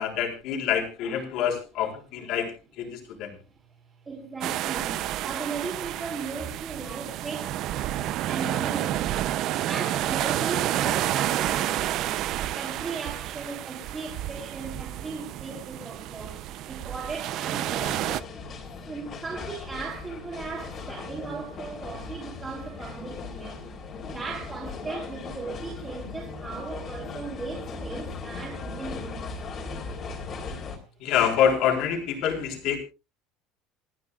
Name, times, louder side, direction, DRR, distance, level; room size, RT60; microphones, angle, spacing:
voice 1, 0.0-2.5 2.8-3.3 31.0-32.8, left 8 dB, 55° left, 4.0 m, -26 dB
voice 2, 4.1-7.5 8.3-9.2 9.7-12.3 12.6-18.0 18.8-23.6 24.1-29.3, right 4 dB, 15° right, 3.9 m, -37 dB
sound 1, 4.4-18.2, right 13 dB, 50° right, 0.6 m, -30 dB
sound 2, 17.5-30.8, left 4 dB, 30° left, 3.4 m, -38 dB
27.5 x 9.8 x 2.4 m
cardioid pair, 160°, 0 cm